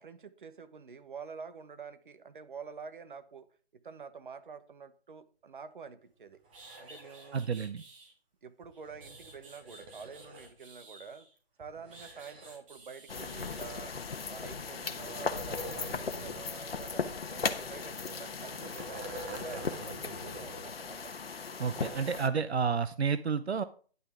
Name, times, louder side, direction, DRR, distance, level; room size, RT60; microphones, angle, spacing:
voice 1, 0.0-3.5 3.7-6.4 6.8-7.7 8.4-11.3 11.6-13.9 14.3-17.0 17.3-21.1 21.7-22.0, right 5 dB, 50° right, 12 dB, 1.2 m, -47 dB
sound 1, 6.1-6.2 6.5-8.1 8.7-11.4 11.9-13.7, right 3 dB, 30° right, 3.5 m, -54 dB
sound 2, 6.3-7.4 8.6-10.5 11.6-12.8 13.3-14.2 14.9-16.4 16.7-16.8 17.6-20.7 21.0-21.1, right 1 dB, 10° right, 0.8 m, -47 dB
voice 2, 7.3-7.8 21.6-23.6, right 6 dB, 80° right, 14 dB, 0.7 m, -30 dB
sound 3, 13.1-22.3, left 5 dB, 65° left, 1.2 m, -37 dB
11.0 x 9.2 x 3.6 m, 0.41 s
figure-of-eight pair, 160°, 32 cm